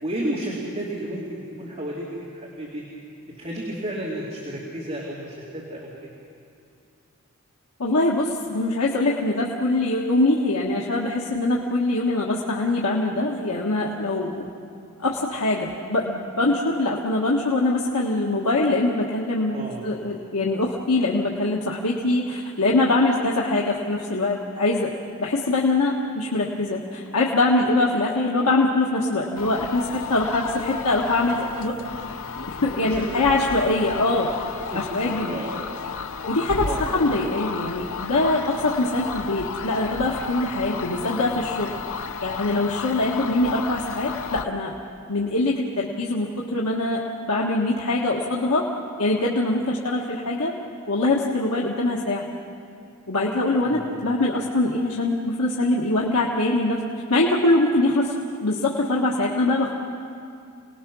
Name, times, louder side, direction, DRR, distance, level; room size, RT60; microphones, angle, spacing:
voice 1, 0.0-2.8 3.2-5.9 19.5-19.9 32.8-33.2 34.7-34.8 35.2-35.5 36.6-36.8 53.5-53.9, right 1 dB, 30° right, -5 dB, 2.8 m, -32 dB
voice 2, 7.8-14.5 15.0-24.9 25.2-31.8 32.6-34.3 34.7-35.3 36.3-44.7 45.1-48.7 49.0-50.6 50.9-52.3 53.1-56.8 57.1-58.1 58.4-59.7, left 2 dB, 85° left, -3 dB, 1.5 m, -23 dB
sound 1, 29.4-44.5, left 5 dB, 65° left, 0.8 m, -33 dB
29.0 x 19.5 x 6.2 m, 2.5 s
head